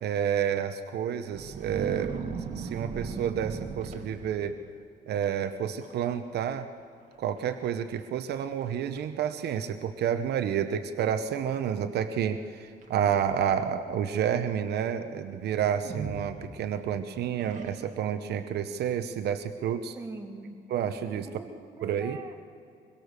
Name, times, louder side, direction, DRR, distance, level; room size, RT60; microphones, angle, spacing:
voice 1, 0.0-4.6 5.1-6.7 7.2-20.0 20.7-21.3 21.8-22.2, right 8 dB, 70° right, 9 dB, 0.9 m, -30 dB
sound 1, 1.3-4.6 5.2-5.5 5.8-6.2 6.5-6.6 7.4-7.5 8.0-8.1 8.6-9.0 9.9-10.0 12.8-13.8 15.8-16.9 17.4-18.1, right 5 dB, 45° right, 2.0 m, -38 dB
voice 2, 20.0-20.6 21.3-22.4, right 3 dB, 15° right, 2 dB, 2.0 m, -43 dB
24.0 x 22.5 x 6.7 m, 2.3 s
cardioid pair, 165°, 17 cm